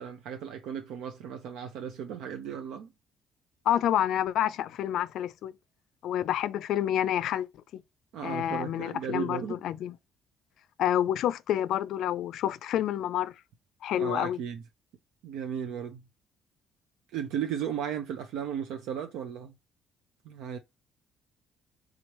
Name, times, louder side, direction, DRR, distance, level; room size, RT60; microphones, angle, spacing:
voice 1, 0.0-2.9 8.1-9.6 14.0-14.6 15.2-16.0 17.1-19.5 20.2-20.6, right 8 dB, 90° right, 0.6 m, -35 dB
voice 2, 3.7-5.5 6.0-7.5 7.7-7.8 8.2-10.0 10.8-13.3 13.8-14.4, left 11 dB, 70° left, 0.4 m, -28 dB
3.7 x 3.1 x 2.9 m
cardioid pair, 145°, 0 cm